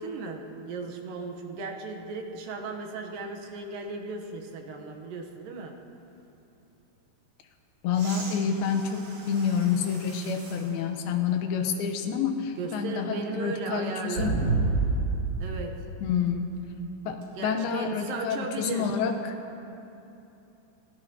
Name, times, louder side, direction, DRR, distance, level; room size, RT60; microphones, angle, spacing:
voice 1, 0.0-5.8 12.6-14.4 15.4-15.8 17.3-18.9, right 3 dB, 75° right, 3 dB, 2.5 m, -36 dB
voice 2, 7.8-14.3 16.0-16.6 17.1-19.4, left 6 dB, 85° left, 6 dB, 2.7 m, -28 dB
sound 1, 7.9-10.7 11.3-11.4 14.1-15.4 17.2-17.3, right 3 dB, 55° right, 3.5 m, -30 dB
20.5 x 17.5 x 2.8 m, 2.9 s
omnidirectional pair, 4.2 m